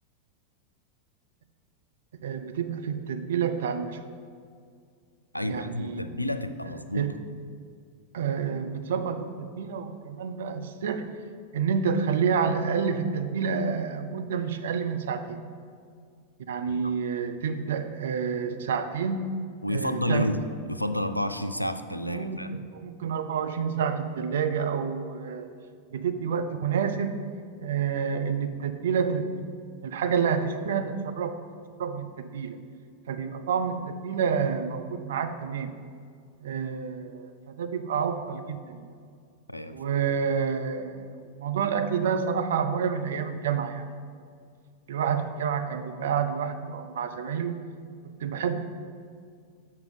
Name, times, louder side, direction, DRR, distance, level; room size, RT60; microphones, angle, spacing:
voice 1, 2.2-4.0 5.4-6.0 6.9-7.1 8.1-11.1 11.5-15.4 16.5-19.3 19.7-20.3 22.0-25.5 25.9-27.2 27.6-31.3 31.8-32.6 33.1-33.8 34.0-35.7 36.4-37.3 37.6-38.9 39.7-43.8 44.9-47.6 48.0-48.6, right 6 dB, 60° right, 7 dB, 0.6 m, -29 dB
voice 2, 5.3-7.1 16.6-16.9 19.6-22.5 39.5-39.7, left 1 dB, 90° left, 9 dB, 0.4 m, -30 dB
7.7 x 5.8 x 5.1 m, 2.2 s
figure-of-eight pair, 90°, 0 cm